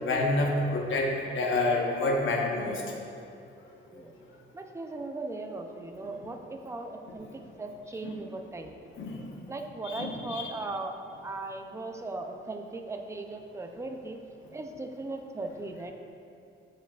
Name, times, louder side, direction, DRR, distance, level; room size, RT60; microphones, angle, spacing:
voice 1, 0.0-2.8 9.0-9.3 9.8-10.5, left 2 dB, 65° left, -1 dB, 1.1 m, -28 dB
voice 2, 4.5-7.3 7.6-8.7 9.5-10.9 11.2-14.2 14.5-15.9, right 2 dB, 15° right, 4 dB, 0.5 m, -38 dB
8.5 x 8.2 x 2.4 m, 2.6 s
wide cardioid pair, 155°, 21 cm